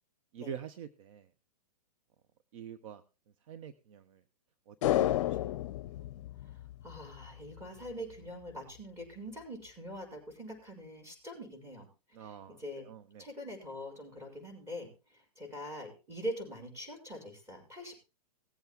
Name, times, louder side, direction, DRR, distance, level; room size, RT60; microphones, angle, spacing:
voice 1, 0.3-1.3 2.5-3.0 3.5-4.2 4.7-5.1 5.4-5.5 6.0-6.1 12.1-13.3, right 8 dB, 55° right, 11 dB, 1.0 m, -46 dB
sound 1, 4.8-7.3 7.6-7.7, left 13 dB, 55° left, 0.6 m, -31 dB
voice 2, 6.4-11.9 12.2-12.9 13.2-18.0, equal, 15° right, 0 dB, 5.9 m, -43 dB
19.0 x 8.1 x 3.6 m, 0.31 s
hypercardioid pair, 120°, 20 cm